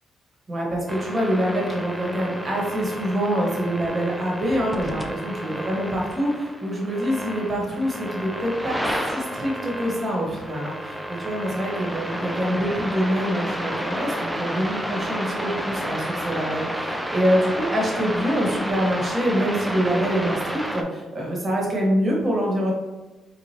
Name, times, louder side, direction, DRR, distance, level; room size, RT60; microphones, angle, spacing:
voice 1, 0.5-8.8 9.1-22.7, equal, 30° right, -2 dB, 1.3 m, -25 dB
sound 1, 0.9-20.8, equal, 5° right, 0.4 m, -31 dB
4.8 x 2.5 x 2.8 m, 1.2 s
cardioid pair, 90°, 0 cm